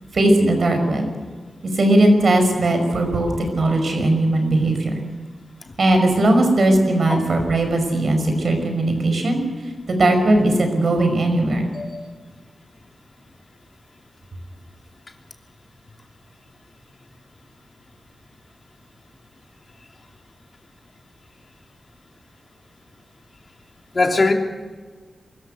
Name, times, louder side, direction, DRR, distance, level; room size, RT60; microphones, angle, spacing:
voice 1, 0.1-1.1 1.7-5.0 5.8-9.4 9.9-11.7, right 1 dB, 65° right, 5 dB, 5.5 m, -18 dB
voice 2, 11.7-12.1 23.9-24.3, left 3 dB, 45° left, 3 dB, 3.0 m, -20 dB
23.5 x 14.0 x 8.1 m, 1.4 s
wide cardioid pair, 85°, 0 cm